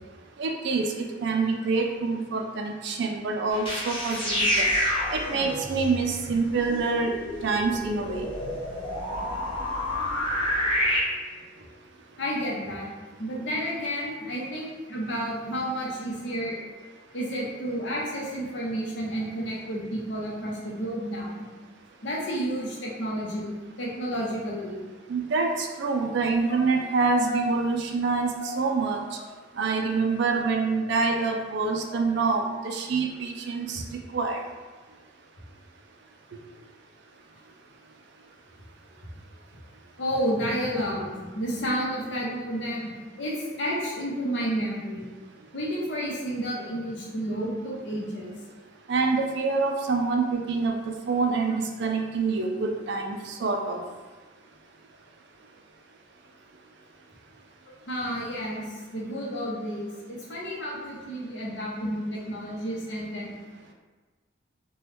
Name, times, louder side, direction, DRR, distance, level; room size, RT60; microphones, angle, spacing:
voice 1, 0.4-4.7 5.1-7.1 7.4-8.3 25.1-29.0 29.6-34.4 48.9-53.8, right 4 dB, 60° right, 3 dB, 0.4 m, -26 dB
sound 1, 3.5-11.0, equal, 30° left, 0.7 m, -29 dB
voice 2, 12.2-12.9 13.2-16.6 17.1-21.3 22.0-23.5 23.8-24.8 26.5-26.6 27.3-27.4 28.4-28.5 40.0-42.9 43.2-45.1 45.5-48.3 57.9-63.3, equal, 60° left, -4 dB, 0.8 m, -31 dB
3.0 x 2.2 x 3.3 m, 1.3 s
head